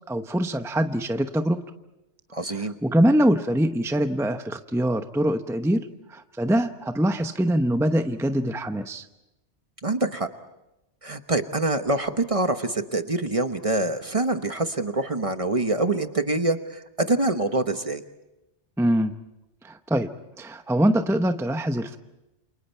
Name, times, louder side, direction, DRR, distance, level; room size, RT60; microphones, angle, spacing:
voice 1, 0.1-1.6 2.5-9.1 18.8-19.1 19.6-20.1 20.4-22.0, right 1 dB, 5° right, 7 dB, 0.8 m, -23 dB
voice 2, 2.3-2.7 9.8-10.3 11.0-18.0, right 2 dB, 30° right, 8 dB, 1.1 m, -25 dB
28.5 x 28.5 x 4.6 m, 0.93 s
omnidirectional pair, 1.2 m